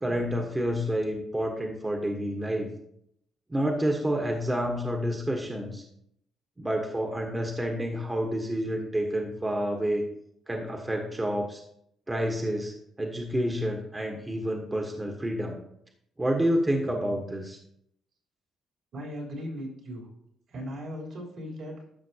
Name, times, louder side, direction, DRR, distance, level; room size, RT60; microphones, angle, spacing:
voice 1, 0.0-2.7 3.5-5.8 6.6-10.1 10.5-11.6 12.1-15.6 16.2-17.6, equal, 15° right, 2 dB, 1.1 m, -29 dB
voice 2, 18.9-20.1 20.5-21.9, equal, 65° right, -2 dB, 3.5 m, -37 dB
12.5 x 5.7 x 2.8 m, 0.74 s
cardioid pair, 90°, 0 cm